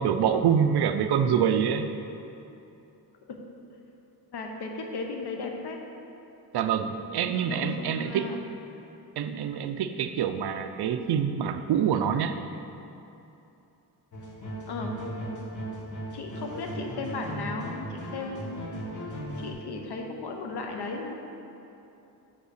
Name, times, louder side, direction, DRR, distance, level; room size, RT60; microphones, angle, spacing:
voice 1, 0.0-1.9 6.5-8.3 9.2-12.4, right 8 dB, 70° right, 9 dB, 0.5 m, -26 dB
voice 2, 4.3-5.8 7.5-8.4 14.7-14.9 16.1-18.8 19.4-21.1, left 3 dB, 70° left, 2 dB, 1.0 m, -36 dB
sound 1, 14.1-19.5, right 1 dB, 45° left, 1.4 m, -37 dB
5.5 x 5.4 x 6.5 m, 2.8 s
wide cardioid pair, 130°, 41 cm